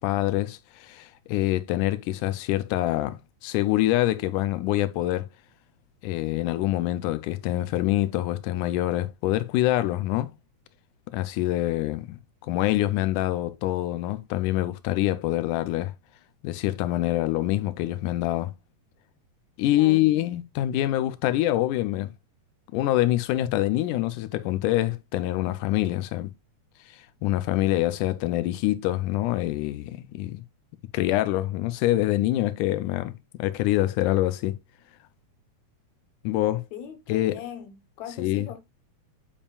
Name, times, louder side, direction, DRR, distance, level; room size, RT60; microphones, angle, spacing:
voice 1, 0.0-5.3 6.0-10.3 11.1-15.9 16.4-18.5 19.6-22.1 22.7-26.3 26.9-30.4 30.9-33.1 33.4-34.5 36.2-36.7 37.1-37.4 38.2-38.5, left 15 dB, 85° left, 2.1 m, -25 dB
voice 2, 19.7-20.1 36.7-38.6, left 8 dB, 70° left, 2.4 m, -40 dB
7.2 x 7.0 x 2.4 m
omnidirectional pair, 3.6 m